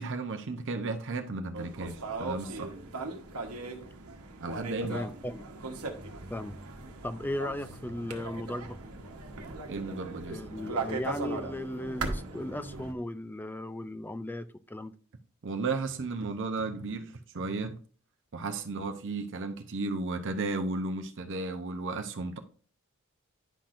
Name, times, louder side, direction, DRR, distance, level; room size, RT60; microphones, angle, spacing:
voice 1, 0.0-2.7 4.4-5.0 9.7-10.5 15.4-17.8 18.3-22.4, right 3 dB, 60° right, 0.7 m, -34 dB
sound 1, 1.5-12.9, right 3 dB, 85° right, 1.1 m, -38 dB
voice 2, 4.8-5.4 6.3-6.6 7.0-8.8 10.3-15.0, left 1 dB, 10° left, 0.4 m, -36 dB
10.0 x 5.8 x 2.5 m
head